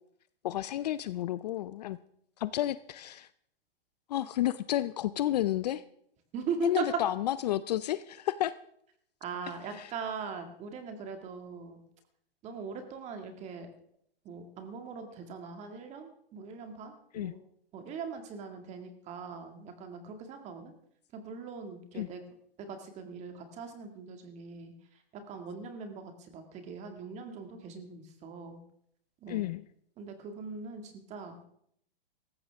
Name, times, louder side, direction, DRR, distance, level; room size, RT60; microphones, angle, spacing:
voice 1, 0.4-2.0 2.4-3.3 4.1-5.8 6.6-8.5 9.7-9.9 17.1-17.3 21.9-22.1 29.3-29.7, left 13 dB, 45° left, 15 dB, 0.5 m, -31 dB
voice 2, 6.3-6.9 9.2-11.8 12.4-13.7 14.3-17.4 17.7-20.7 21.1-22.2 22.6-24.7 25.3-28.6 29.2-29.5 30.0-31.5, right 5 dB, 20° right, 6 dB, 2.1 m, -40 dB
18.0 x 15.0 x 3.6 m, 0.69 s
hypercardioid pair, 145°, 30 cm